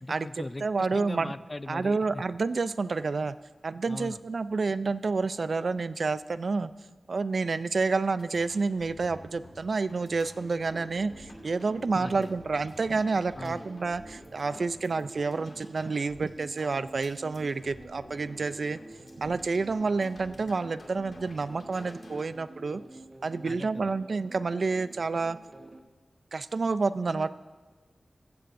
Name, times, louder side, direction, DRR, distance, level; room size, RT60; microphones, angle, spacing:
voice 1, 0.0-2.2 3.9-4.2 12.0-12.3 13.4-13.7 23.4-23.9 27.1-27.3, left 2 dB, 25° left, 15 dB, 0.3 m, -40 dB
voice 2, 0.6-1.3 1.7-3.3 3.6-6.7 7.1-18.8 19.2-22.8 23.2-25.4 26.3-27.3, right 4 dB, 60° right, 14 dB, 0.4 m, -29 dB
sound 1, 8.1-22.2, left 1 dB, 60° left, 2.2 m, -52 dB
sound 2, 10.4-25.8, right 2 dB, 35° right, 0.9 m, -49 dB
16.0 x 14.5 x 2.6 m, 1.4 s
wide cardioid pair, 110°, 0 cm